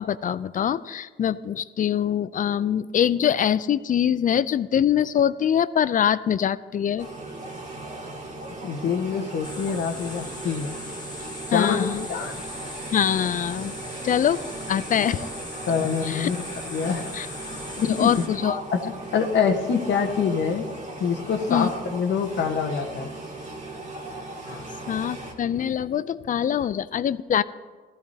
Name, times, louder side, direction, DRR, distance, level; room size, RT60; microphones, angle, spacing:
voice 1, 0.0-7.1 11.5-12.1 12.9-13.8 14.0-15.2 16.0-16.3 17.1-17.3 17.9-18.6 21.5-21.7 24.9-27.4, left 9 dB, 45° left, 16 dB, 0.4 m, -24 dB
sound 1, 7.0-25.3, right 2 dB, 40° right, 2.3 m, -38 dB
voice 2, 8.6-10.7 11.5-12.4 15.7-16.4 16.7-17.1 17.8-18.2 18.7-18.8 19.1-20.6 21.0-23.1 24.5-24.7, left 6 dB, 65° left, 3 dB, 1.2 m, -25 dB
sound 2, 9.4-18.3, left 1 dB, 20° left, 2.0 m, -39 dB
16.0 x 14.0 x 2.8 m, 1.4 s
cardioid pair, 90°, 20 cm